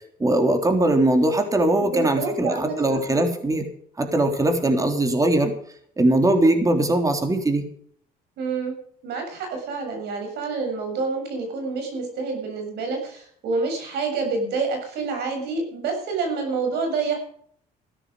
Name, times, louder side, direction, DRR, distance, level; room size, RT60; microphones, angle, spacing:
voice 1, 0.2-3.7 4.0-5.5 6.0-7.7, right 1 dB, 20° right, 5 dB, 3.5 m, -20 dB
voice 2, 1.8-3.0 8.4-8.7 9.0-17.2, right 4 dB, 75° right, 3 dB, 7.2 m, -28 dB
15.5 x 13.0 x 5.2 m, 0.62 s
cardioid pair, 110°, 17 cm